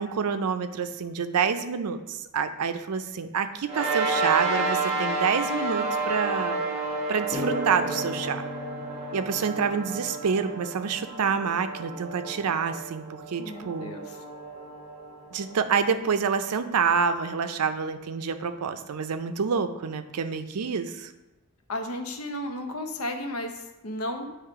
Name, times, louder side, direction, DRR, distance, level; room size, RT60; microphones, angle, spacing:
voice 1, 0.0-6.6 7.1-8.4 9.1-13.9 15.3-21.1, right 6 dB, 85° right, 9 dB, 0.5 m, -27 dB
sound 1, 3.7-16.4, right 3 dB, 25° right, 1.2 m, -31 dB
sound 2, 7.3-10.7, right 1 dB, 45° right, 1.4 m, -36 dB
voice 2, 13.4-14.2 21.7-24.4, left 1 dB, 70° left, 4 dB, 0.8 m, -34 dB
8.4 x 3.1 x 4.7 m, 1.0 s
head